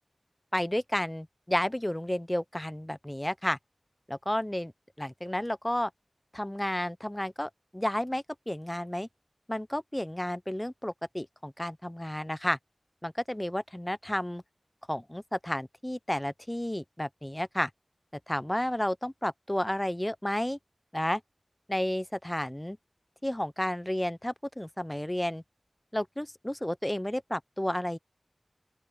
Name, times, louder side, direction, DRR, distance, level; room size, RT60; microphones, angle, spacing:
voice 1, 0.5-3.6 4.1-4.7 5.0-5.9 6.3-9.1 9.5-12.6 13.0-14.4 14.9-17.7 18.3-20.6 20.9-21.2 21.7-22.8 23.2-25.4 25.9-28.0, left 1 dB, 15° left, 0.7 m, -32 dB
open air
wide cardioid pair, 55°, 0 cm